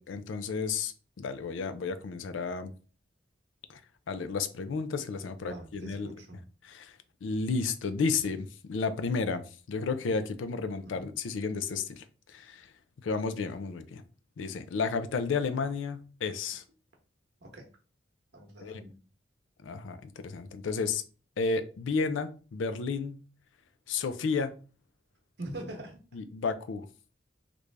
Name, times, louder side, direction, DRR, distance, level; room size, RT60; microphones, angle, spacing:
voice 1, 0.1-2.7 3.7-3.8 4.1-6.1 6.7-6.9 7.2-12.7 13.0-14.0 14.4-16.6 18.6-18.8 19.6-21.0 21.4-23.2 23.9-24.5 26.1-26.9, left 4 dB, 85° left, 0.4 m, -32 dB
voice 2, 5.4-6.5 10.8-11.1 17.4-17.7 18.3-19.0 25.4-26.2, right 1 dB, 60° right, 0.9 m, -43 dB
3.2 x 2.5 x 3.3 m
head